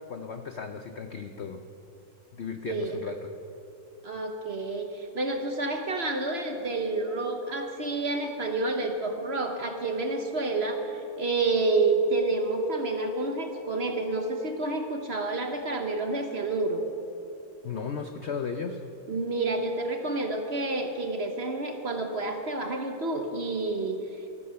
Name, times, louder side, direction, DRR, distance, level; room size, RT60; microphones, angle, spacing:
voice 1, 0.1-1.6 2.3-3.3 17.6-18.8, left 6 dB, 85° left, 6 dB, 0.5 m, -35 dB
voice 2, 2.7-3.0 4.0-16.8 19.1-24.0, right 2 dB, 45° right, 4 dB, 1.0 m, -29 dB
14.0 x 13.5 x 5.7 m, 2.9 s
omnidirectional pair, 2.0 m